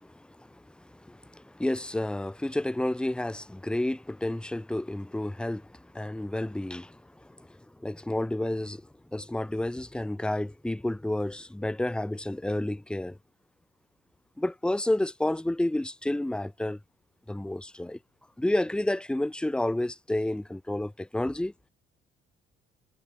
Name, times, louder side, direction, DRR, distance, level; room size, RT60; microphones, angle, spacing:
voice 1, 0.0-8.8 9.1-13.2 14.4-16.8 17.3-18.0 18.4-21.5, left 1 dB, 5° left, 1.7 m, -30 dB
cardioid pair, 110°, 17 cm